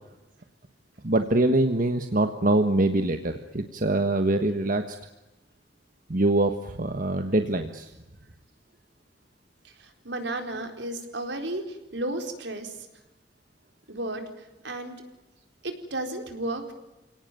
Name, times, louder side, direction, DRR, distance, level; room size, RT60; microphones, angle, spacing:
voice 1, 1.0-5.0 6.1-7.9, right 2 dB, 50° right, 7 dB, 1.4 m, -24 dB
voice 2, 9.8-12.7 13.9-14.2 14.6-15.0 15.6-16.7, right 1 dB, 75° right, 6 dB, 4.3 m, -33 dB
29.5 x 18.0 x 9.1 m, 1.0 s
head